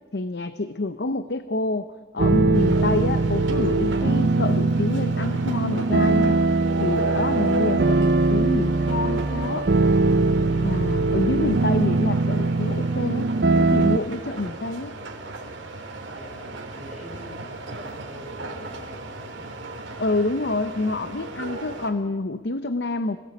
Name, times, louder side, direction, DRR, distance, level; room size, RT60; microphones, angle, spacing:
voice 1, 0.1-1.9 2.1-6.4 6.8-9.7 10.6-14.9 20.0-23.2, left 2 dB, 60° left, 11 dB, 0.7 m, -27 dB
sound 1, 2.2-14.0, right 3 dB, 55° right, 0.6 m, -21 dB
sound 2, 2.5-21.9, right 2 dB, 80° right, 3.3 m, -36 dB
voice 2, 16.1-19.7, equal, 40° left, 0 dB, 7.8 m, -44 dB
26.5 x 18.0 x 8.4 m, 1.5 s
head